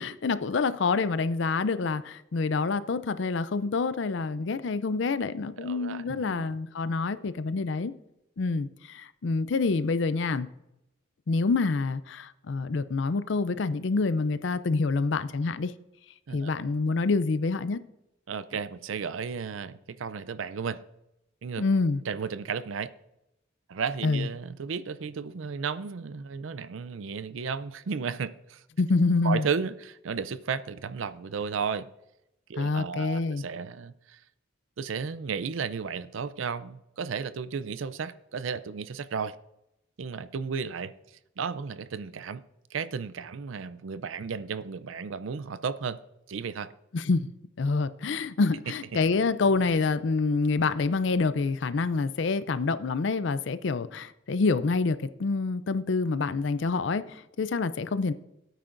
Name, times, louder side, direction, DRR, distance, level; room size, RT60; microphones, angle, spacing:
voice 1, 0.0-7.9 8.4-10.5 11.3-15.7 16.3-17.8 21.6-22.0 24.0-24.3 28.8-29.4 32.6-33.4 46.9-47.3 47.6-58.1, left 4 dB, 60° left, 0.5 m, -27 dB
voice 2, 5.6-6.5 16.3-16.5 18.3-20.8 21.4-21.6 22.0-22.9 23.7-28.6 29.2-31.9 32.5-34.2 34.8-39.4 40.0-40.9 41.4-42.4 42.7-46.0 46.3-46.7, right 6 dB, 75° right, 0.5 m, -34 dB
16.5 x 9.1 x 2.6 m
head